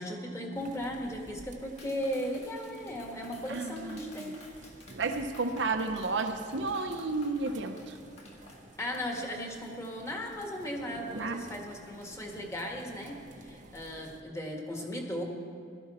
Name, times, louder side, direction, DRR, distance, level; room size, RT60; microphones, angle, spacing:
voice 1, 0.0-4.4 8.8-15.2, equal, 15° left, 1 dB, 1.6 m, -37 dB
sound 1, 0.5-14.2, right 2 dB, 45° right, 1.0 m, -53 dB
Clapping, 1.8-8.6, left 2 dB, 35° left, 1.9 m, -53 dB
voice 2, 3.5-4.3 4.9-8.0 11.1-11.5, right 3 dB, 75° right, 6 dB, 0.7 m, -32 dB
16.5 x 12.5 x 4.3 m, 2.4 s
head